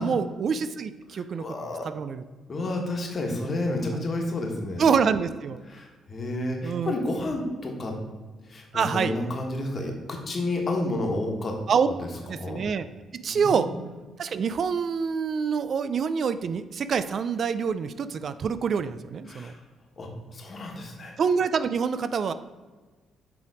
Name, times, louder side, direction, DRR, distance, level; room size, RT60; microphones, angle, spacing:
voice 1, 0.0-1.4 1.8-2.2 4.8-5.6 6.6-6.9 8.7-9.1 11.7-11.9 12.3-12.9 13.1-13.7 14.2-19.5 21.2-22.3, right 6 dB, 55° right, 12 dB, 0.3 m, -26 dB
voice 2, 1.1-1.9 2.5-4.8 5.7-8.0 8.5-11.6 11.9-12.6 13.3-13.8 19.3-19.6 20.0-21.2, left 2 dB, 40° left, 2 dB, 1.3 m, -31 dB
6.8 x 3.4 x 4.8 m, 1.3 s
cardioid pair, 90°, 0 cm